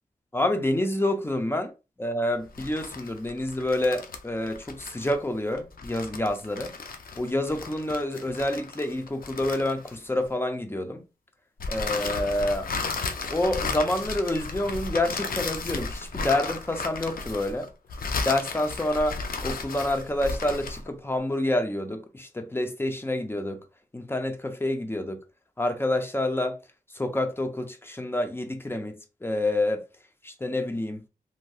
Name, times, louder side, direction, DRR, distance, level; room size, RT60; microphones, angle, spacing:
voice 1, 0.3-1.7 2.0-6.7 7.2-11.0 11.7-12.7 13.3-17.7 18.2-23.6 23.9-25.2 25.6-26.6 26.9-29.8 30.2-31.0, left 1 dB, 15° left, 0.7 m, -28 dB
sound 1, 2.5-10.3 11.6-20.9, left 4 dB, 80° left, 0.5 m, -34 dB
3.0 x 2.7 x 2.3 m
cardioid pair, 50°, 15 cm